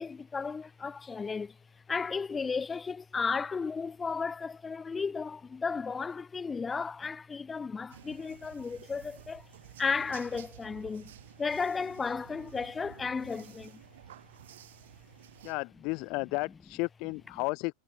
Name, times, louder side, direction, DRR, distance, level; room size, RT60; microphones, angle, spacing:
voice 1, 0.0-1.6 1.9-9.5 9.8-11.1 11.4-13.8, left 5 dB, 15° left, 3.2 m, -34 dB
sound 1, 7.9-15.5, right 13 dB, 60° right, 5.7 m, -52 dB
voice 2, 15.4-17.7, left 28 dB, 45° left, 1.5 m, -33 dB
figure-of-eight pair, 90°, 0 cm